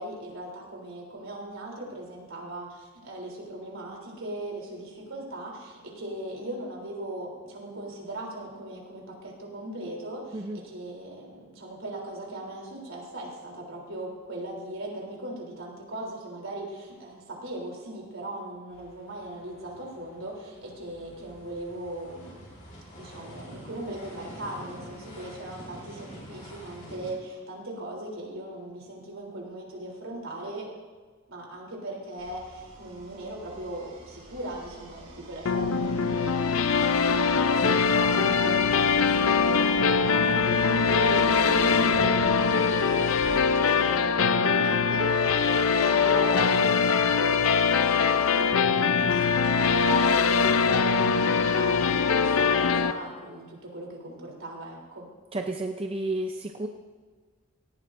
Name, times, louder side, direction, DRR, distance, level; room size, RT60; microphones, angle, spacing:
voice 1, 0.0-22.5 23.0-30.7 31.3-43.2 43.5-55.1, right 1 dB, 65° right, -2 dB, 3.4 m, -39 dB
sound 1, 18.7-27.1, equal, 40° left, 4.3 m, -47 dB
sound 2, 32.2-43.4, right 1 dB, 50° right, 4.8 m, -47 dB
sound 3, 35.5-52.9, left 5 dB, 75° left, 0.6 m, -22 dB
voice 2, 55.3-56.7, right 2 dB, 25° right, 3 dB, 0.6 m, -31 dB
17.5 x 14.5 x 2.6 m, 1.5 s
head